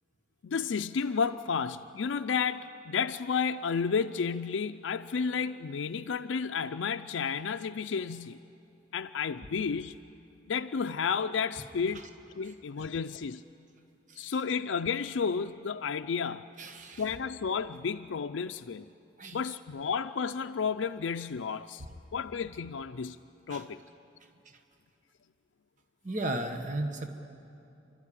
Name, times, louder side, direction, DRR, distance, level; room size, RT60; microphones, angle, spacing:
voice 1, 0.4-8.4 8.9-10.0 10.5-12.1 12.3-13.4 14.2-16.5 17.0-18.9 19.3-21.8 22.1-23.2 23.5-23.8, left 6 dB, 90° left, 7 dB, 0.4 m, -32 dB
voice 2, 12.4-12.8 14.1-14.2 16.6-17.0 19.2-19.5 23.5-23.6 26.0-27.1, right 1 dB, 40° right, 5 dB, 1.3 m, -35 dB
29.5 x 12.5 x 10.0 m, 2.7 s
head